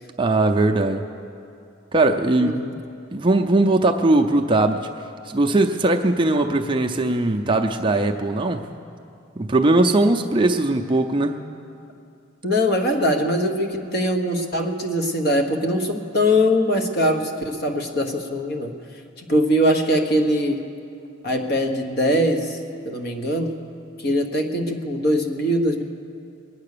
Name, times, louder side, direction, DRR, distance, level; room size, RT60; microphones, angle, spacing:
voice 1, 0.2-1.0 1.9-2.7 3.1-4.9 5.3-8.7 9.4-11.4, right 2 dB, 25° right, 4 dB, 0.5 m, -19 dB
voice 2, 2.4-2.7 12.4-18.7 19.2-20.6 21.2-22.6 22.8-23.5 24.0-25.8, equal, 50° left, 4 dB, 1.3 m, -22 dB
21.5 x 9.6 x 6.8 m, 2.5 s
head